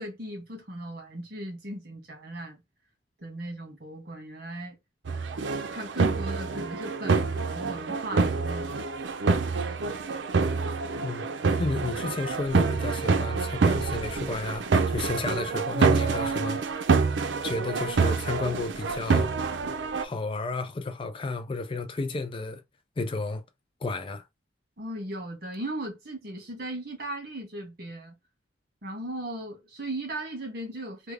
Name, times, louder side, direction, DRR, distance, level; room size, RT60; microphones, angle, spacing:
voice 1, 0.0-2.6 3.2-4.8 5.7-9.1 24.8-28.2 28.8-31.1, right 1 dB, 55° right, 1.7 m, -37 dB
sound 1, 5.0-20.0, right 4 dB, 90° right, 0.5 m, -26 dB
voice 2, 11.6-16.6 17.4-19.3 20.0-22.6 23.0-23.4 23.8-24.2, left 3 dB, 30° left, 0.4 m, -32 dB
3.4 x 2.3 x 3.3 m
head